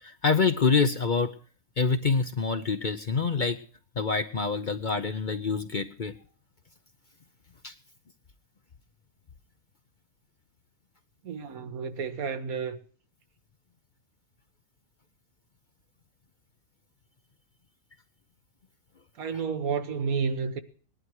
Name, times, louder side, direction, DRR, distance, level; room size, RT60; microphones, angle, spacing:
voice 1, 0.0-1.3 1.8-3.6 4.0-6.1 7.6-7.7 19.3-19.4, left 5 dB, 45° left, 0.8 m, -26 dB
voice 2, 11.2-12.8 19.2-20.6, right 5 dB, 80° right, 1.6 m, -31 dB
19.0 x 11.5 x 4.7 m
omnidirectional pair, 1.5 m